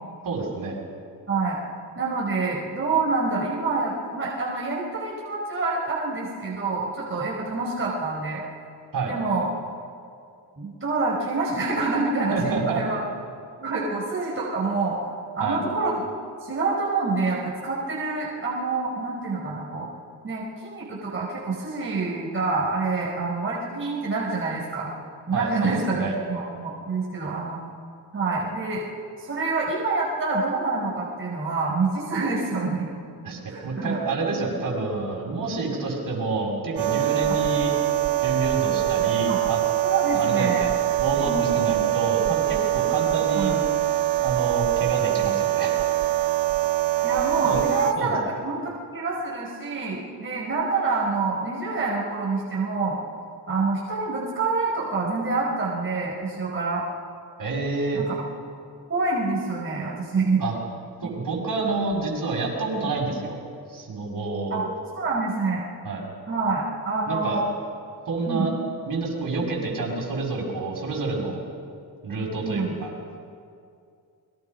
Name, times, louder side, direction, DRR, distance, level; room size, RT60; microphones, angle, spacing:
voice 1, 0.2-0.8 8.9-9.1 12.3-12.8 13.7-13.9 15.4-15.6 25.3-26.2 33.2-37.7 38.2-39.6 40.1-40.8 41.0-43.5 44.2-45.8 47.4-47.6 48.0-48.2 57.4-58.0 60.4-60.6 61.0-63.4 63.7-64.6 65.8-66.0 67.1-67.4 68.1-68.5 68.9-71.4 72.0-72.9, right 3 dB, 50° right, 0 dB, 7.1 m, -28 dB
voice 2, 1.3-1.6 1.9-8.4 9.0-9.5 10.6-13.0 13.6-15.0 15.4-15.9 16.4-19.9 20.2-24.9 25.3-27.6 28.1-28.8 29.2-32.9 33.5-34.0 35.6-35.7 37.2-37.4 39.3-39.4 39.8-40.7 41.1-41.6 43.3-43.7 47.0-53.0 53.5-56.8 57.9-58.1 58.9-60.4 61.0-61.1 64.5-64.6 64.9-65.6 66.3-67.4 68.3-68.6 69.5-69.6 72.4-72.7, right 3 dB, 30° right, -4 dB, 5.0 m, -27 dB
sound 1, 36.8-47.9, right 15 dB, 80° right, 1.0 m, -24 dB
29.0 x 23.0 x 5.7 m, 2.4 s
cardioid pair, 90°, 41 cm